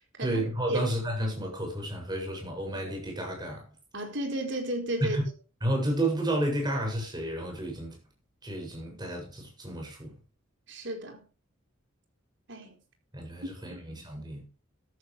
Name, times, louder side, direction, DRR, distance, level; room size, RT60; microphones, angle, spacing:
voice 1, 0.2-3.7 5.0-5.2 5.6-8.0 8.4-10.1 13.1-14.5, right 1 dB, 20° right, 7.6 m, -31 dB
voice 2, 3.9-5.2 10.7-11.2 12.5-12.8 13.4-13.8, right 1 dB, 65° right, 4.6 m, -33 dB
14.0 x 13.5 x 3.5 m
head